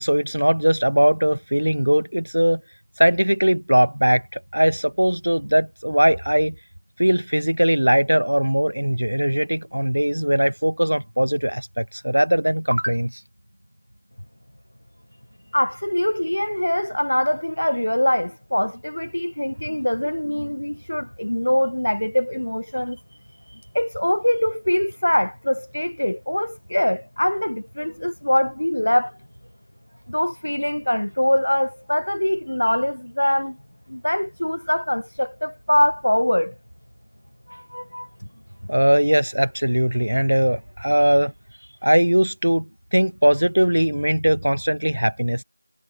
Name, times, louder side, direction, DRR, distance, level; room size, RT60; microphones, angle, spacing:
voice 1, 0.0-2.6 3.0-6.5 7.0-13.2 38.7-41.3 41.8-45.4, equal, 75° right, 1.1 m, -20 dB
voice 2, 15.5-23.0 23.7-29.2 30.1-33.6 33.9-36.5 37.5-38.3, left 1 dB, 70° left, 0.7 m, -23 dB
figure-of-eight pair, 175°, 0 cm